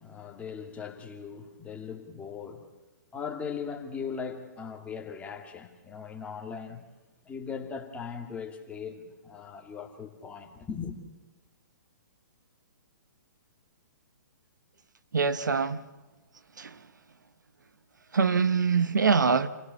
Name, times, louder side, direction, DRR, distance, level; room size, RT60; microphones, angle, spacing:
voice 1, 0.0-2.6 3.1-6.8 7.3-11.0, left 6 dB, 15° left, 2.3 m, -39 dB
voice 2, 15.1-15.8 16.6-16.8 18.1-19.5, right 5 dB, 80° right, 1.1 m, -24 dB
27.0 x 16.5 x 7.0 m
hypercardioid pair, 130°, 10 cm